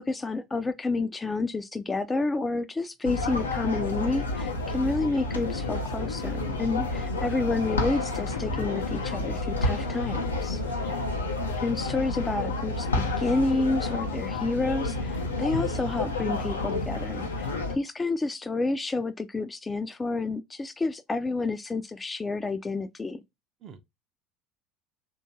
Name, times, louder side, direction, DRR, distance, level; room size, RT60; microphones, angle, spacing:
voice 1, 0.0-10.6 11.6-23.2, left 3 dB, 20° left, 0.3 m, -29 dB
sound 1, 3.0-17.8, left 2 dB, 85° left, 0.5 m, -30 dB
voice 2, 10.6-11.0 23.6-23.8, right 6 dB, 45° right, 0.5 m, -45 dB
2.9 x 2.3 x 2.7 m
figure-of-eight pair, 70°, 0 cm